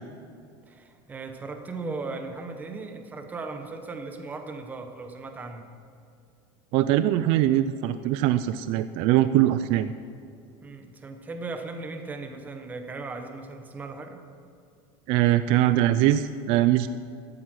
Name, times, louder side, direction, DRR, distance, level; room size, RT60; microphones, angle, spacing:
voice 1, 0.7-5.7 10.6-14.2, right 3 dB, 15° right, 5 dB, 1.0 m, -37 dB
voice 2, 6.7-9.9 15.1-16.9, right 13 dB, 45° right, 12 dB, 0.4 m, -22 dB
12.5 x 12.5 x 6.2 m, 2.5 s
cardioid pair, 170°, 13 cm